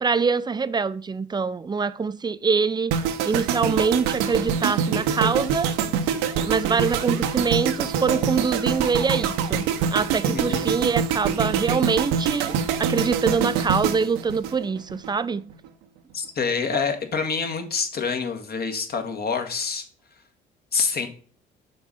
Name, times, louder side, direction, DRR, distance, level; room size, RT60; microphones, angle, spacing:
voice 1, 0.0-2.9 3.3-5.7 6.4-15.5, right 5 dB, 20° right, 0.5 m, -24 dB
sound 1, 2.9-15.1 15.4-15.7, right 7 dB, 80° right, 0.7 m, -25 dB
voice 2, 10.3-10.6 16.1-19.8 20.7-21.1, left 5 dB, 45° left, 1.7 m, -26 dB
6.6 x 4.1 x 5.0 m
hypercardioid pair, 55°, 21 cm